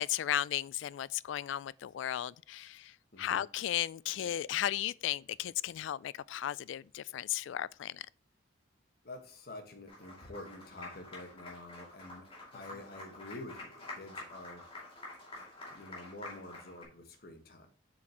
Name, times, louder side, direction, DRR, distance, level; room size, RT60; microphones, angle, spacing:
voice 1, 0.0-8.1, left 11 dB, 75° left, 0.3 m, -35 dB
voice 2, 9.0-14.7 15.7-17.7, left 2 dB, 55° left, 1.4 m, -48 dB
Applause, 9.9-16.8, left 2 dB, 30° left, 2.5 m, -48 dB
7.4 x 6.3 x 3.0 m
head